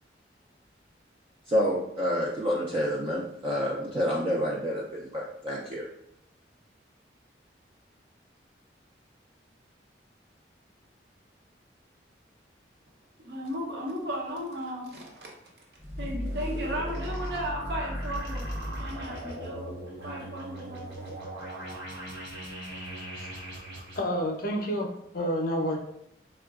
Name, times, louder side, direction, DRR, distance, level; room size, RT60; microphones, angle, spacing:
voice 1, 1.5-5.8, equal, 30° right, -3 dB, 0.3 m, -28 dB
voice 2, 13.2-15.3 16.0-19.7 20.0-21.1 21.4-21.7, equal, 60° right, -1 dB, 0.7 m, -36 dB
sound 1, 15.8-24.0, equal, 85° right, 1.0 m, -37 dB
voice 3, 24.0-24.9 25.1-25.8, equal, 50° left, 0 dB, 0.5 m, -28 dB
3.7 x 2.2 x 2.3 m, 0.76 s
head